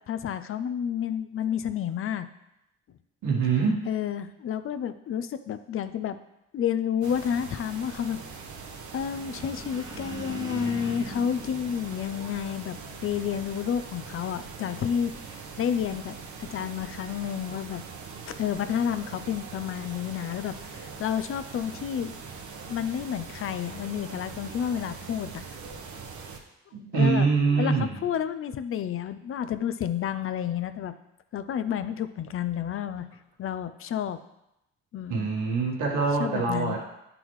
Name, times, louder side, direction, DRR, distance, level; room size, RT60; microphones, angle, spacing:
voice 1, 0.1-2.3 3.9-6.2 6.5-8.2 8.9-15.1 15.6-17.8 18.3-22.1 22.7-25.4 26.9-30.9 31.3-33.1 33.4-34.2 34.9-35.3 36.2-36.8, left 8 dB, 45° left, 11 dB, 0.5 m, -30 dB
voice 2, 3.2-3.8 26.7-28.0 35.1-36.8, right 4 dB, 90° right, -2 dB, 1.5 m, -24 dB
sound 1, 7.0-26.4, right 5 dB, 75° right, 1.0 m, -42 dB
sound 2, 9.0-12.6, right 2 dB, 15° right, 0.9 m, -41 dB
9.9 x 3.8 x 3.1 m, 0.87 s
cardioid pair, 90°, 30 cm